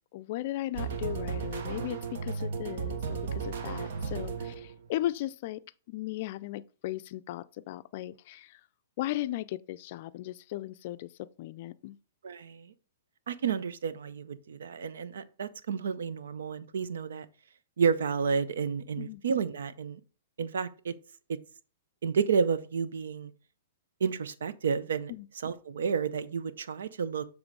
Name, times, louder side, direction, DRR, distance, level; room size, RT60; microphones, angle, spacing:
voice 1, 0.1-5.6 5.9-8.6 9.0-12.0 19.0-19.2 25.1-25.3, left 15 dB, 50° left, 0.4 m, -37 dB
sound 1, 0.7-4.9, right 5 dB, 65° right, 1.0 m, -35 dB
voice 2, 12.2-12.7 13.3-17.3 17.8-20.0 20.4-20.9 21.3-21.4 22.0-23.3 24.0-25.1 25.4-27.3, right 6 dB, 80° right, 0.6 m, -31 dB
7.3 x 3.1 x 4.8 m
hypercardioid pair, 135°, 0 cm